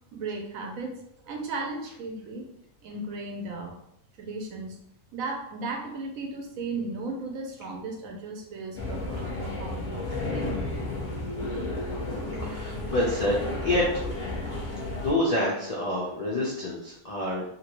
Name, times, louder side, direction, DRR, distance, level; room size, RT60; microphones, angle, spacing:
voice 1, 0.1-1.0 1.3-2.5 2.8-3.8 4.2-4.8 5.1-10.6, right 3 dB, 70° right, 2 dB, 0.9 m, -35 dB
sound 1, 8.7-15.1, left 2 dB, 10° left, 0.7 m, -32 dB
voice 2, 12.4-13.9 14.9-17.4, left 1 dB, 65° left, -5 dB, 0.3 m, -27 dB
2.9 x 2.6 x 2.9 m, 0.74 s
omnidirectional pair, 1.6 m